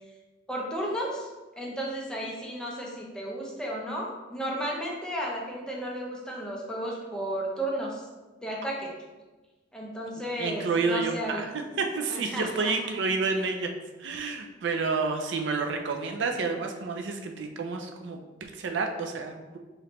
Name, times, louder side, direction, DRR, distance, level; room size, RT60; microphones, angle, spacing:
voice 1, 0.5-1.3 1.6-8.0 8.4-8.9 9.7-11.4 12.1-12.9, equal, 5° left, -3 dB, 0.7 m, -33 dB
voice 2, 10.4-11.5 11.8-13.7 14.0-19.6, right 4 dB, 70° right, 4 dB, 0.4 m, -29 dB
4.9 x 3.0 x 2.9 m, 1.2 s
head